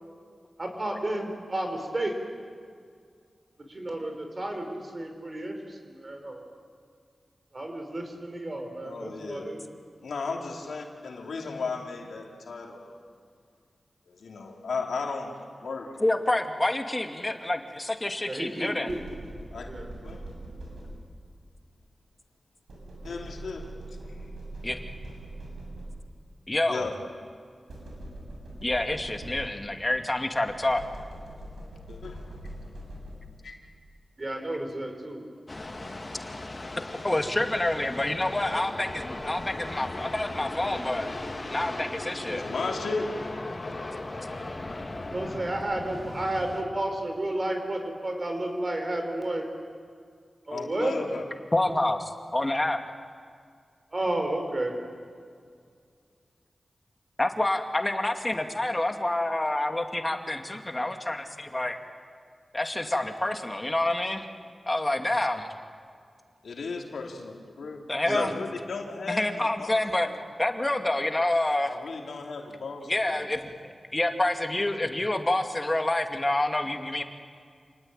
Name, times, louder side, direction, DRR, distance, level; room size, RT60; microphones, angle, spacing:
voice 1, 0.6-2.1 3.7-6.5 7.5-9.6 18.3-19.0 19.7-19.9 34.2-35.2 45.1-49.5 50.5-50.9 53.9-54.7 68.0-68.3, right 1 dB, 45° right, 4 dB, 6.0 m, -32 dB
voice 2, 8.8-9.5 10.0-13.0 14.1-16.0 19.5-19.7 20.0-20.3 23.0-23.7 24.1-24.3 26.7-26.9 31.9-32.3 33.4-33.6 42.3-43.1 50.5-51.2 66.4-70.2 71.6-73.2, left 4 dB, 90° left, 1 dB, 3.1 m, -35 dB
voice 3, 16.0-18.9 24.6-24.8 26.5-26.8 28.6-30.8 37.0-41.1 41.5-42.5 51.5-52.8 57.2-61.8 62.5-64.3 64.7-65.5 67.9-68.3 69.1-70.1 70.4-71.7 72.9-77.0, left 1 dB, 30° left, 5 dB, 2.4 m, -27 dB
sound 1, 18.9-21.3 22.7-26.3 27.7-29.9 30.5-33.5, right 1 dB, 85° right, 7.3 m, -42 dB
sound 2, 35.5-46.6, left 2 dB, 45° left, 3.6 m, -38 dB
28.5 x 19.5 x 9.2 m, 2.1 s
cardioid pair, 40°, 0 cm